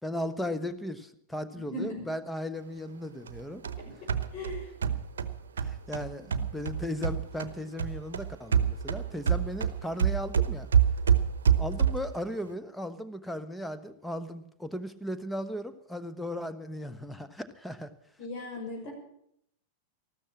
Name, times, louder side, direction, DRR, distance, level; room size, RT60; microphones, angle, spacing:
voice 1, 0.0-3.6 5.6-10.7 11.6-17.9, equal, 5° left, 10 dB, 1.1 m, -36 dB
voice 2, 1.5-2.1 3.8-4.7 5.6-5.7 6.2-6.4 18.2-18.9, left 2 dB, 40° left, 0 dB, 6.1 m, -39 dB
sound 1, 3.3-7.5 7.8-12.2, right 7 dB, 70° right, 0.9 m, -27 dB
13.5 x 13.0 x 7.4 m, 0.73 s
figure-of-eight pair, 90°, 0 cm